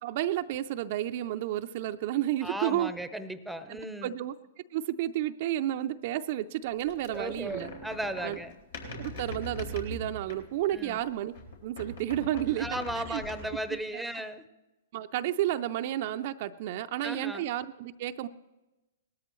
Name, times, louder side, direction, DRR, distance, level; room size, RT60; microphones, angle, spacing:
voice 1, 0.0-2.9 3.7-3.8 4.0-4.3 4.7-7.7 8.2-8.4 9.0-11.3 11.6-13.2 13.9-14.0 14.9-18.3, right 13 dB, 55° right, 8 dB, 0.5 m, -31 dB
voice 2, 2.4-4.2 7.1-8.5 10.7-11.0 12.6-14.4 17.0-17.5, right 1 dB, ahead, 11 dB, 0.7 m, -36 dB
sound 1, 6.8-11.0 11.3-13.8, left 1 dB, 75° left, 3.6 m, -42 dB
19.0 x 13.0 x 3.1 m, 1.0 s
hypercardioid pair, 125°, 0 cm